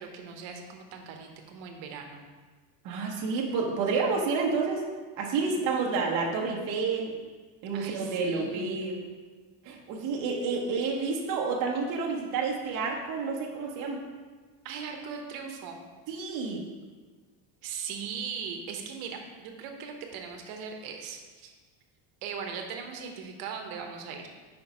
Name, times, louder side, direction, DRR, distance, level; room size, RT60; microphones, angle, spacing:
voice 1, 0.0-2.2 7.7-8.7 14.6-15.8 17.6-21.5 22.2-24.3, right 6 dB, 70° right, 3 dB, 0.9 m, -39 dB
voice 2, 2.8-4.8 5.2-7.1 7.6-9.0 9.6-14.0 16.1-16.6, right 4 dB, 40° right, -1 dB, 0.8 m, -29 dB
5.2 x 4.5 x 5.2 m, 1.4 s
cardioid pair, 180°, 47 cm